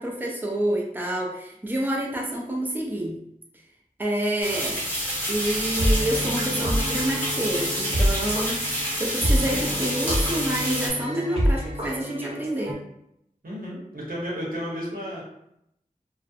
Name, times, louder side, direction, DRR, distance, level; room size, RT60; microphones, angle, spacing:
voice 1, 0.0-3.2 4.0-4.8 5.3-8.6 9.0-12.8, right 1 dB, 15° right, -1 dB, 0.4 m, -28 dB
sound 1, 4.4-10.9, equal, 15° left, 0.9 m, -28 dB
sound 2, 5.5-12.7, equal, 45° right, 0.8 m, -27 dB
voice 2, 13.4-15.2, equal, 80° right, -5 dB, 0.8 m, -32 dB
2.4 x 2.0 x 2.6 m, 0.77 s
wide cardioid pair, 45°, 15 cm